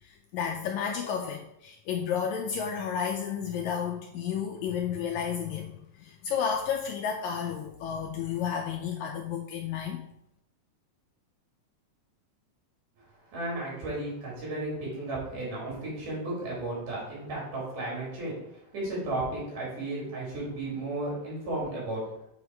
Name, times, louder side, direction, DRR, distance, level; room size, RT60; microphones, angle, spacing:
voice 1, 0.0-10.0, left 7 dB, 80° left, 2 dB, 1.7 m, -32 dB
voice 2, 13.3-18.4 18.7-22.0, right 2 dB, 75° right, -5 dB, 4.3 m, -34 dB
7.1 x 3.5 x 4.5 m, 0.78 s
omnidirectional pair, 3.7 m